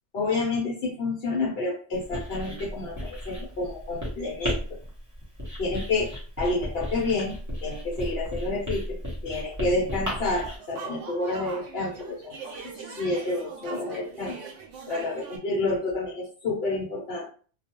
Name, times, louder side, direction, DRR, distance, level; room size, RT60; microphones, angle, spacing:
voice 1, 0.1-4.8 5.6-7.3 7.6-12.5 12.7-14.4 14.9-17.3, left 2 dB, 60° left, -5 dB, 0.9 m, -29 dB
Writing, 1.9-10.6, equal, 15° right, 0.8 m, -35 dB
sound 1, 10.4-15.4, right 5 dB, 80° right, 0.9 m, -41 dB
2.3 x 2.2 x 2.9 m, 0.41 s
omnidirectional pair, 1.2 m